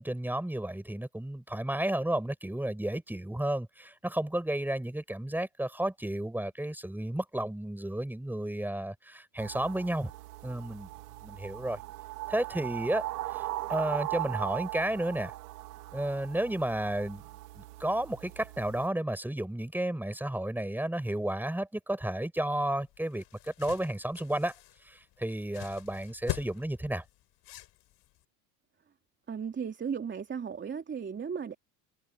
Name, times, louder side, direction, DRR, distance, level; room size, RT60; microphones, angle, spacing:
voice 1, 0.0-10.1 10.4-10.9 11.2-11.8 12.3-13.4 13.7-15.3 15.9-17.2 17.5-27.0, right 1 dB, 5° right, 7.9 m, -32 dB
sound 1, 9.4-18.9, right 18 dB, 85° right, 3.2 m, -39 dB
sound 2, 22.8-28.2, left 16 dB, 55° left, 5.4 m, -42 dB
voice 2, 29.3-31.5, right 6 dB, 25° right, 3.2 m, -35 dB
supercardioid pair, 110°, 46 cm